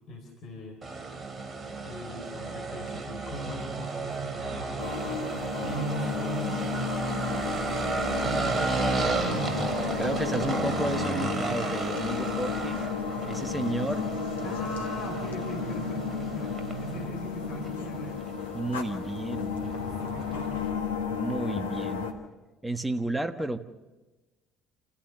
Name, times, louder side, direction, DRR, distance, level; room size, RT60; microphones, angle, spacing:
voice 1, 0.1-0.8 1.8-6.7 7.4-9.7 14.4-18.3 19.8-20.9, right 1 dB, 55° left, 2 dB, 3.9 m, -39 dB
sound 1, 0.8-20.7, right 3 dB, 30° right, 2.7 m, -33 dB
sound 2, 4.8-22.1, left 6 dB, 80° left, 1.5 m, -33 dB
voice 2, 10.0-12.8 13.2-14.1 18.5-19.6 21.1-22.1 22.6-23.6, right 2 dB, 10° right, 9 dB, 1.3 m, -32 dB
27.5 x 14.5 x 6.8 m, 1.2 s
figure-of-eight pair, 55°, 0 cm